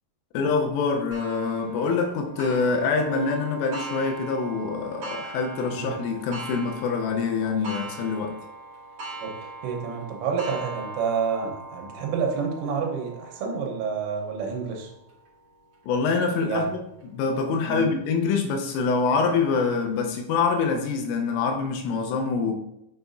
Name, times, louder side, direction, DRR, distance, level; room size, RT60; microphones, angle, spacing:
voice 1, 0.3-8.4 15.9-16.8 17.0-22.5, left 4 dB, 85° left, 3 dB, 3.3 m, -25 dB
Clock, 1.1-16.4 17.0-17.1 17.6-17.7 18.7-18.8, right 2 dB, 65° right, 1.6 m, -41 dB
voice 2, 9.2-14.9 16.4-16.7 17.7-17.9, right 5 dB, 80° right, 1 dB, 3.4 m, -29 dB
6.9 x 6.7 x 2.6 m, 0.85 s
omnidirectional pair, 5.9 m